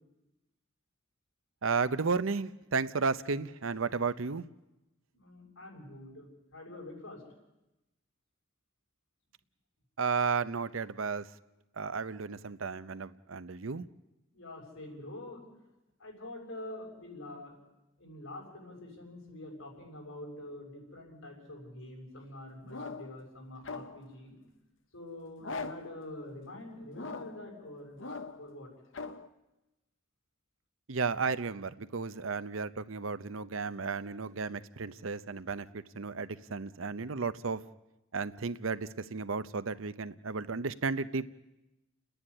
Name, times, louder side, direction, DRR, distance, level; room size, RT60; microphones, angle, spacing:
voice 1, 1.6-4.4 10.0-11.3 11.8-13.9 30.9-37.6 38.1-41.3, right 4 dB, 75° right, 14 dB, 0.8 m, -33 dB
voice 2, 5.1-7.2 14.3-15.4 16.0-17.5 18.0-24.3 24.9-28.0 28.3-28.7, left 1 dB, 90° left, 1 dB, 7.0 m, -46 dB
sound 1, 22.7-23.2 23.6-24.1 25.4-26.0 26.9-27.5 28.0-28.5 28.9-29.3, left 3 dB, 65° left, 1.0 m, -41 dB
30.0 x 10.5 x 10.0 m, 0.99 s
head